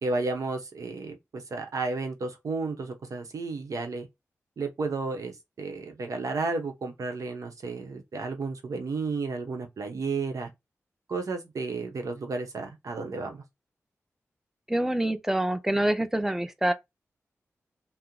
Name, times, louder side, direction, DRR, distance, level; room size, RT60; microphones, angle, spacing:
voice 1, 0.0-4.1 4.6-10.5 11.1-13.4, right 3 dB, 75° right, 0.8 m, -32 dB
voice 2, 14.7-16.7, right 1 dB, 5° right, 0.5 m, -26 dB
2.8 x 2.0 x 3.7 m
cardioid pair, 40°, 6 cm